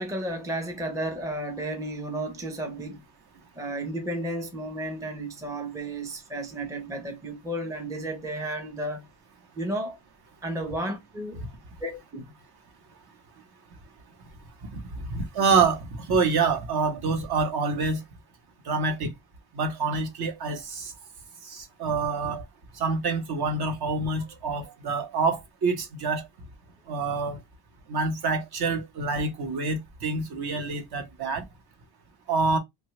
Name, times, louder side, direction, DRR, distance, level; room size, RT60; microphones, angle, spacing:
voice 1, 0.0-3.0 3.6-9.0 9.6-10.0 10.4-11.4 11.8-12.2, right 1 dB, 5° right, 0.6 m, -33 dB
voice 2, 14.7-18.0 18.6-19.1 19.5-20.9 21.4-22.4 22.7-26.3 26.9-27.4 27.9-31.4 32.3-32.6, right 4 dB, 50° right, 0.9 m, -27 dB
2.9 x 2.3 x 3.0 m
cardioid pair, 130°, 50 cm